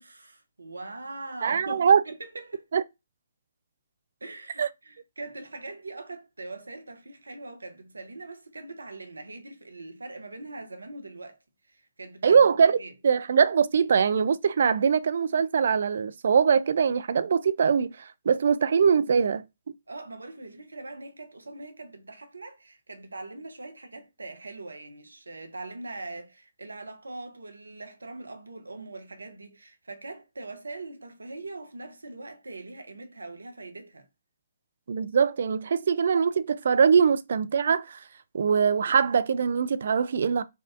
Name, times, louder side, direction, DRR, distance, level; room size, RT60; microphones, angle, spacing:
voice 1, 0.0-2.7 4.2-11.4 11.7-12.5 12.8-12.9 19.9-34.1, right 2 dB, 75° right, 0.8 m, -42 dB
voice 2, 1.4-2.0 2.7-2.8 4.6-4.7 12.2-12.8 13.0-19.4 34.9-38.0 38.3-40.4, right 6 dB, 55° right, 0.3 m, -22 dB
4.2 x 2.4 x 2.4 m
figure-of-eight pair, 135°, 0 cm